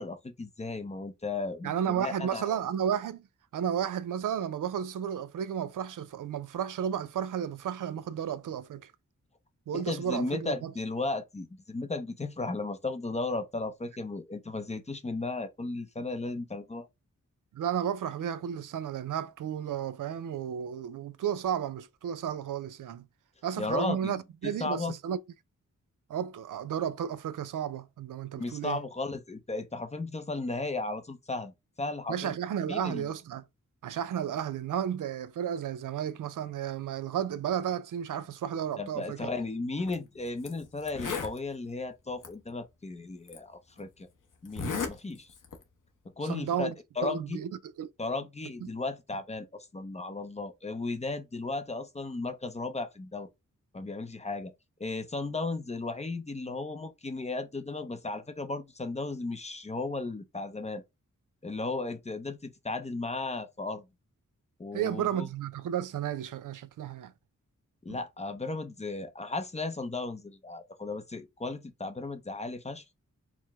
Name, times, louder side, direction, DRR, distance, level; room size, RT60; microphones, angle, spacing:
voice 1, 0.0-2.5 9.7-16.9 23.6-24.1 24.4-25.0 28.4-32.4 32.7-33.1 38.8-44.1 44.4-45.3 46.2-47.4 48.0-53.3 53.7-54.5 54.8-60.8 61.4-63.9 64.6-65.3 67.8-72.8, left 3 dB, 20° left, 0.5 m, -35 dB
voice 2, 1.6-3.3 3.5-8.9 9.7-10.7 17.5-23.0 23.4-25.2 26.1-28.8 32.1-33.4 33.8-39.3 46.2-46.7 47.0-47.5 47.8-47.9 48.6-48.8 64.7-67.1 67.9-68.0, right 9 dB, 85° right, 0.5 m, -33 dB
Zipper (clothing), 39.8-40.0 40.5-40.6 40.8-41.4 42.2-42.3 43.3-43.4 44.4-44.9 45.3-45.6, left 5 dB, 85° left, 0.9 m, -34 dB
4.6 x 2.0 x 3.4 m
wide cardioid pair, 145°, 31 cm